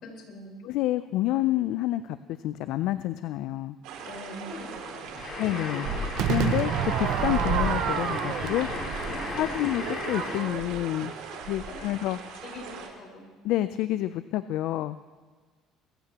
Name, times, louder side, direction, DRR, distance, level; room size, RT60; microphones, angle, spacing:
voice 1, 0.0-0.6 4.0-5.4 9.3-9.4 11.7-11.8 12.4-13.3, left 2 dB, 55° left, -1 dB, 4.7 m, -43 dB
voice 2, 0.6-2.2 2.4-3.8 5.4-5.9 6.3-6.7 7.0-8.7 9.4-11.1 11.5-12.2 13.4-15.0, left 14 dB, 70° left, 13 dB, 0.4 m, -28 dB
sound 1, 3.8-12.9, right 3 dB, 85° right, 2.5 m, -36 dB
sound 2, 5.2-10.7, left 3 dB, 35° left, 2.1 m, -36 dB
Crowd / Fireworks, 6.2-11.4, right 11 dB, 65° right, 0.6 m, -31 dB
23.0 x 14.5 x 2.9 m, 1.4 s
cardioid pair, 125°, 0 cm